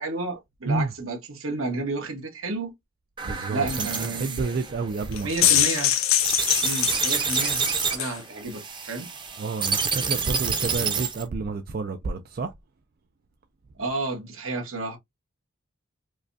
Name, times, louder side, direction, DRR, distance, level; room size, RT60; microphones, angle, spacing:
voice 1, 0.0-2.7 3.5-4.6 5.2-6.0 6.6-9.1 13.8-15.0, right 3 dB, 75° right, 1.4 m, -31 dB
sound 1, 3.2-11.3, right 5 dB, 20° right, 0.7 m, -29 dB
voice 2, 3.2-5.6 9.4-12.5, right 3 dB, 45° right, 0.3 m, -30 dB
sound 2, 5.1-8.2, left 11 dB, 80° left, 0.7 m, -23 dB
4.7 x 2.3 x 2.6 m
head